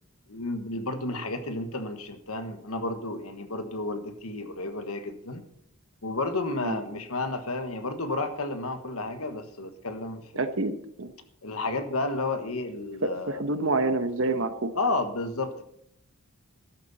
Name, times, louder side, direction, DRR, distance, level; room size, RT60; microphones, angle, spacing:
voice 1, 0.3-5.4 6.0-10.2 11.4-13.4 14.7-15.6, left 2 dB, 85° left, 9 dB, 1.4 m, -31 dB
voice 2, 10.3-11.1 13.0-14.7, right 2 dB, 65° right, 10 dB, 1.1 m, -27 dB
13.0 x 12.0 x 4.2 m, 0.70 s
head